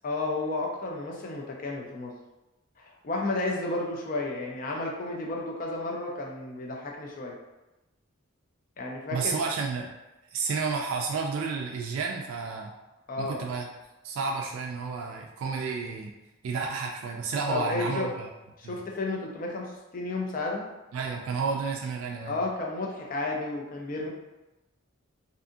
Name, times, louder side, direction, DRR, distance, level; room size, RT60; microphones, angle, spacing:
voice 1, 0.0-2.1 2.8-7.3 8.8-9.4 13.1-13.4 17.5-18.2 18.6-20.6 22.3-24.1, left 2 dB, 40° left, -1 dB, 0.4 m, -32 dB
voice 2, 9.1-9.9 10.3-12.7 13.2-13.7 14.0-16.1 16.4-18.3 18.6-18.8 20.9-22.3, right 4 dB, 80° right, 0 dB, 0.3 m, -31 dB
2.7 x 2.4 x 2.6 m, 1.0 s
head